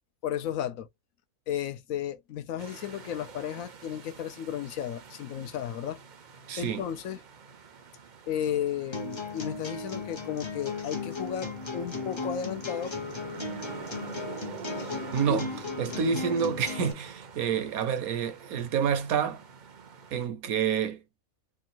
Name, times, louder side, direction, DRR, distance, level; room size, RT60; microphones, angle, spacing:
voice 1, 0.2-0.9 1.5-6.0 6.6-7.2 8.3-13.0 15.3-15.5, left 9 dB, 70° left, 1.0 m, -34 dB
sound 1, 2.6-20.3, right 6 dB, 45° right, 0.6 m, -47 dB
voice 2, 6.5-6.8 15.1-15.5 15.8-19.4 20.1-21.0, right 7 dB, 75° right, 1.3 m, -28 dB
sound 2, 8.9-16.9, left 3 dB, 25° left, 0.7 m, -36 dB
3.5 x 2.3 x 4.2 m
omnidirectional pair, 1.5 m